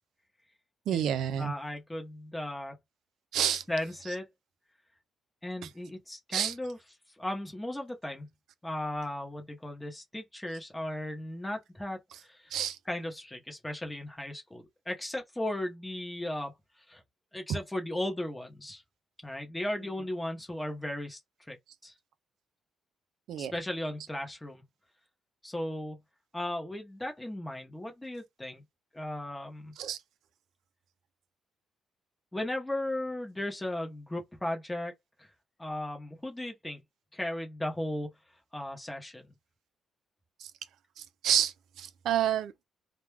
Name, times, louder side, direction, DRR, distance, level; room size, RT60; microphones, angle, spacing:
voice 1, 0.9-1.5 3.3-3.6 6.3-6.5 12.5-12.8 23.3-23.5 29.8-30.0 41.2-41.5 41.8-42.6, right 10 dB, 70° right, 0.3 m, -28 dB
voice 2, 1.4-2.7 3.5-4.3 5.4-6.8 7.2-8.3 8.6-16.5 16.9-17.0 17.3-18.8 19.2-21.2 21.5-21.6 21.8-21.9 23.4-24.6 25.4-26.0 26.3-28.6 28.9-29.7 32.3-34.9 35.2-35.3 35.6-36.8 37.1-38.1 38.5-39.3, left 1 dB, 5° left, 0.8 m, -36 dB
2.3 x 2.2 x 3.1 m
cardioid pair, 160°, 0 cm